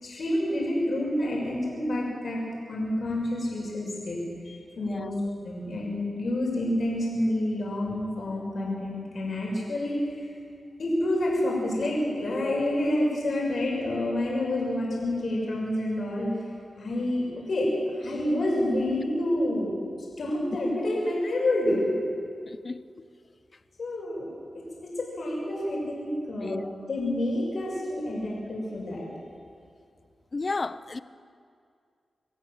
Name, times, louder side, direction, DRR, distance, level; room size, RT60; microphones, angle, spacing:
voice 1, 0.0-2.4 2.7-5.1 5.4-10.3 10.8-16.3 16.8-17.7 18.0-19.7 20.2-21.9 23.8-24.3 24.8-29.0, left 1 dB, 65° left, 6.6 m, -28 dB
voice 2, 4.8-5.2 20.5-20.6 22.5-22.8 26.4-26.7 30.3-31.0, left 3 dB, 45° left, 0.8 m, -33 dB
26.5 x 15.5 x 7.6 m
cardioid pair, 65°, 0 cm